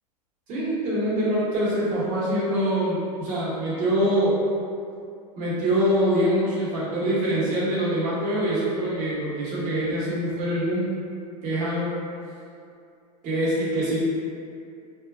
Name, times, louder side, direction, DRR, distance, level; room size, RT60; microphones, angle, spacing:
voice 1, 0.5-4.4 5.4-10.9 11.4-12.0 13.2-14.0, right 1 dB, 40° right, -8 dB, 1.1 m, -24 dB
2.9 x 2.1 x 2.4 m, 2.4 s
hypercardioid pair, 105°, 21 cm